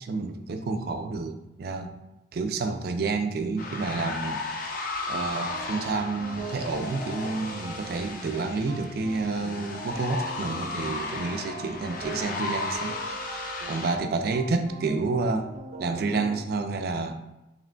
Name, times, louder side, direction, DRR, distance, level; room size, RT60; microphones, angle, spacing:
voice 1, 0.1-1.9 2.3-4.7 5.1-15.5 15.8-17.2, right 3 dB, 60° right, 7 dB, 0.3 m, -29 dB
sound 1, 3.6-13.9, left 3 dB, 50° left, 0.5 m, -35 dB
sound 2, 5.1-16.4, right 3 dB, 85° right, 0.8 m, -42 dB
4.9 x 3.1 x 2.2 m, 0.94 s
head